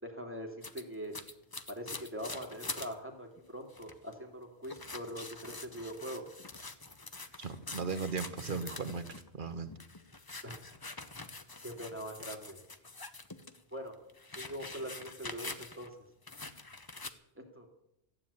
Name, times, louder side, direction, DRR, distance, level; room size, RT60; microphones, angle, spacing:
voice 1, 0.0-1.1 1.7-6.2 10.4-10.6 11.6-12.6 13.7-13.9 14.3-15.9 17.5-17.7, equal, 10° right, 1 dB, 2.7 m, -42 dB
sound 1, 0.6-2.9 3.4-3.5 3.7-4.1 4.6-9.3 9.7-13.6 13.9-15.9 16.3-17.1, left 3 dB, 20° left, 0.8 m, -45 dB
voice 2, 7.4-9.1 9.3-9.7, right 5 dB, 45° right, 8 dB, 1.4 m, -36 dB
14.5 x 9.5 x 8.6 m, 0.80 s
omnidirectional pair, 1.2 m